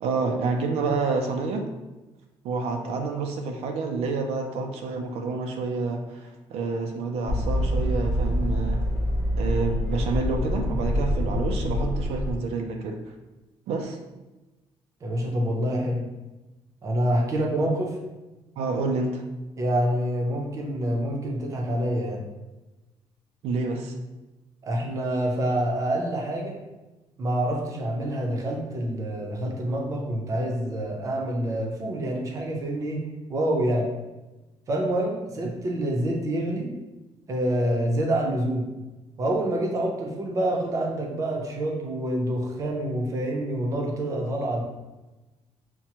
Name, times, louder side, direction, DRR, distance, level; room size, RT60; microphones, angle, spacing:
voice 1, 0.0-1.7 2.4-8.8 9.4-13.0 13.7-14.0 18.6-19.2 23.4-23.9, right 4 dB, 80° right, 3 dB, 0.4 m, -28 dB
sound 1, 7.3-12.3, equal, 10° left, 0.7 m, -26 dB
voice 2, 15.0-16.0 16.8-17.9 19.6-22.2 24.6-26.6 27.2-33.0 33.3-33.9 34.7-36.7 37.3-38.7 39.2-44.6, right 1 dB, 30° right, 0 dB, 0.6 m, -27 dB
5.8 x 2.1 x 2.8 m, 1.1 s
cardioid pair, 170°, 11 cm